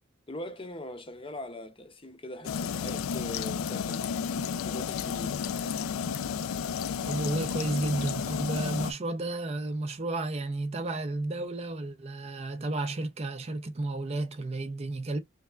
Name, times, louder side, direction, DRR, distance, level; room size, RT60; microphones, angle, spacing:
voice 1, 0.3-4.2 4.6-5.5, left 1 dB, 25° left, 0.6 m, -41 dB
sound 1, 2.5-8.9, left 7 dB, 80° left, 0.3 m, -32 dB
voice 2, 7.1-15.2, right 2 dB, 30° right, 0.4 m, -32 dB
3.3 x 3.3 x 2.2 m
head